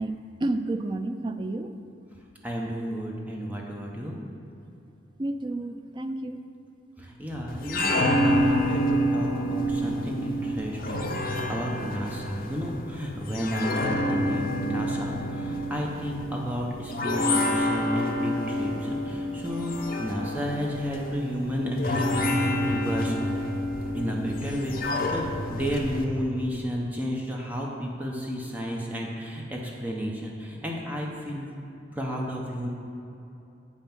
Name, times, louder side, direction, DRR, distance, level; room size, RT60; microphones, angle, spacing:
voice 1, 0.0-1.7 5.2-6.4, right 2 dB, 25° right, 7 dB, 0.4 m, -30 dB
voice 2, 2.4-4.2 7.0-19.7 20.0-23.3 23.9-31.5 31.9-32.7, equal, 10° right, -2 dB, 0.7 m, -32 dB
sound 1, 7.5-26.1, left 1 dB, 50° left, 0.8 m, -28 dB
8.1 x 5.4 x 5.9 m, 2.8 s
head